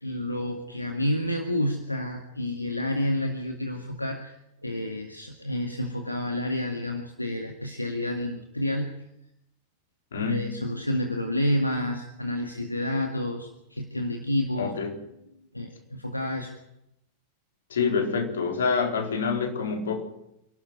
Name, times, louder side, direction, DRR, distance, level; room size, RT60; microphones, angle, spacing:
voice 1, 0.0-4.4 4.6-8.9 10.2-14.7 15.5-16.5, left 1 dB, 85° left, 4 dB, 2.0 m, -29 dB
voice 2, 10.1-10.6 14.6-15.0 17.7-20.0, left 5 dB, 65° left, 3 dB, 4.4 m, -27 dB
28.5 x 12.5 x 9.3 m, 0.82 s
figure-of-eight pair, 90°, 0 cm